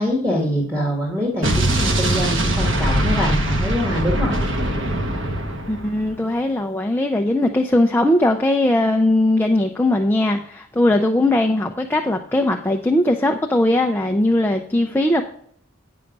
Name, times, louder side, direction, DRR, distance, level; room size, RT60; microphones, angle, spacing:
voice 1, 0.0-4.3, equal, 15° right, -3 dB, 1.8 m, -24 dB
Explosion, 1.4-6.2, right 1 dB, 90° right, 1.2 m, -22 dB
voice 2, 5.7-15.2, left 1 dB, 10° left, 2 dB, 0.5 m, -19 dB
9.8 x 5.6 x 5.3 m, 0.64 s
head